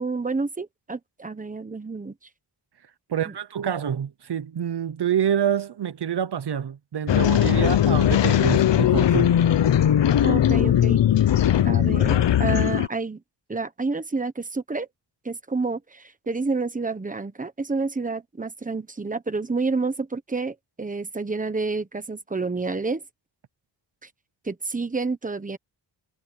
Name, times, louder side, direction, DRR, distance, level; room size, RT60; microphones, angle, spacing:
voice 1, 0.0-2.1 3.2-3.3 10.2-11.0 11.6-13.2 13.5-14.9 15.2-23.0 24.0-24.1 24.4-25.6, right 3 dB, 20° right, 1.2 m, -29 dB
voice 2, 3.1-9.3, right 9 dB, 65° right, 0.9 m, -27 dB
sound 1, 7.1-12.9, left 10 dB, 85° left, 0.8 m, -19 dB
wide cardioid pair, 155°, 42 cm